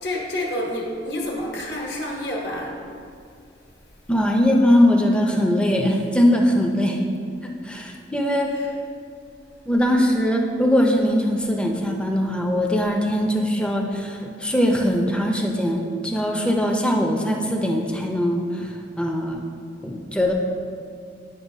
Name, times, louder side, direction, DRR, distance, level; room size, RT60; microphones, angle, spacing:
voice 1, 0.0-2.8 8.5-8.7, left 1 dB, 65° left, -2 dB, 1.3 m, -28 dB
voice 2, 4.1-7.0 7.6-8.5 9.7-19.4 19.8-20.3, equal, 5° left, 1 dB, 0.5 m, -21 dB
9.5 x 5.7 x 2.7 m, 2.3 s
head